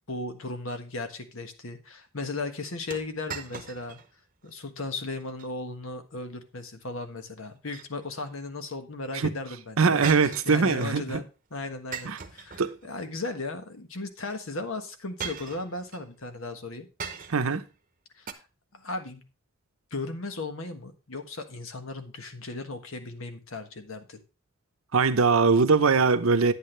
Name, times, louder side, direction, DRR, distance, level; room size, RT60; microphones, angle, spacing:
voice 1, 0.1-4.0 4.4-16.9 18.1-18.4 18.7-19.3 19.9-24.2, left 2 dB, 70° left, 1.4 m, -36 dB
sound 1, 2.9-4.1 4.5-4.6 5.2-5.5 7.4-8.3 10.0-11.0 11.9-13.1 14.2-14.4 15.2-16.1 17.0-17.6 18.3-18.4, right 7 dB, 40° right, 0.9 m, -39 dB
voice 2, 9.8-11.2 12.1-12.2 12.6-12.7 17.3-17.6 24.9-26.5, right 4 dB, 80° right, 0.8 m, -22 dB
9.6 x 8.5 x 3.3 m
head